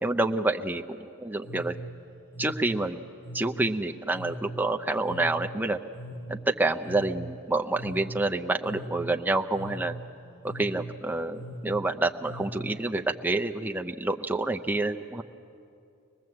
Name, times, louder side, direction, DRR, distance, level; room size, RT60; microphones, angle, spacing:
voice 1, 0.0-1.7 2.4-3.0 3.3-5.8 6.3-9.9 10.4-15.2, right 2 dB, 10° right, 4 dB, 0.6 m, -28 dB
sound 1, 1.4-13.0, equal, 40° left, 5.5 m, -41 dB
24.5 x 20.0 x 7.8 m, 2.6 s
head